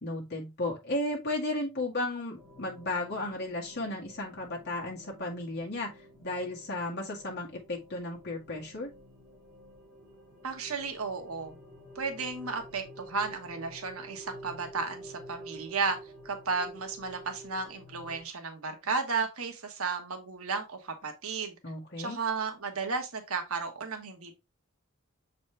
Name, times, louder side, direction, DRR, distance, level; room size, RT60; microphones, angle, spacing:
voice 1, 0.0-8.9 21.6-22.2, left 2 dB, 50° left, 1.9 m, -34 dB
sound 1, 2.4-18.2, right 1 dB, 10° right, 2.4 m, -50 dB
voice 2, 10.4-11.6 11.9-16.0 16.2-21.6 22.0-24.4, right 4 dB, 85° right, 1.3 m, -34 dB
6.9 x 4.2 x 3.2 m
head